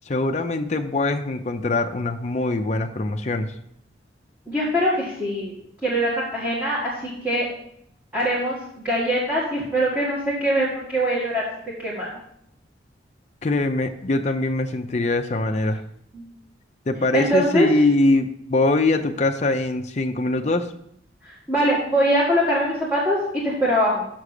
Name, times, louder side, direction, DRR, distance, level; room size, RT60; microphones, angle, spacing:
voice 1, 0.1-3.5 13.4-15.8 16.9-20.7, left 2 dB, 40° left, 5 dB, 0.5 m, -22 dB
voice 2, 4.5-5.6 5.8-7.5 8.1-12.1 16.1-16.2 17.1-17.7 21.2-24.1, equal, 10° right, -7 dB, 1.7 m, -23 dB
6.2 x 6.0 x 6.6 m, 0.73 s
head